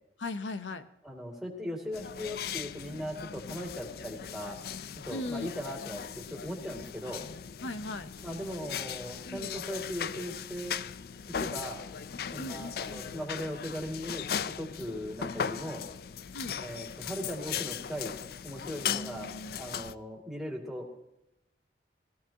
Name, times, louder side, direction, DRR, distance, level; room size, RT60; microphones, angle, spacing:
voice 1, 0.2-0.9 5.1-5.5 5.8-6.0 7.6-8.1 12.4-13.1 16.3-16.6 18.8-19.6, left 2 dB, 85° left, 11 dB, 0.7 m, -38 dB
voice 2, 1.0-4.6 5.0-7.2 8.2-10.8 11.4-11.8 12.3-15.8 16.6-18.1 18.4-20.9, equal, ahead, -2 dB, 2.3 m, -38 dB
sound 1, 1.9-19.9, left 8 dB, 55° left, 0.4 m, -38 dB
18.0 x 15.5 x 2.8 m, 0.88 s
head